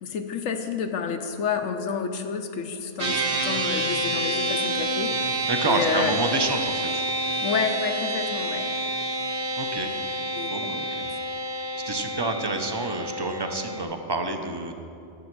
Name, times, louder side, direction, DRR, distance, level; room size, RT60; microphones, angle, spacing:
voice 1, 0.0-6.1 7.4-8.7 10.3-10.5, left 6 dB, 85° left, 5 dB, 1.1 m, -29 dB
sound 1, 3.0-13.8, right 1 dB, 50° right, 1.3 m, -28 dB
voice 2, 5.5-7.0 9.6-9.9 10.5-11.1 11.8-14.7, right 3 dB, 25° right, 5 dB, 0.6 m, -28 dB
12.5 x 7.4 x 6.0 m, 2.5 s
omnidirectional pair, 1.3 m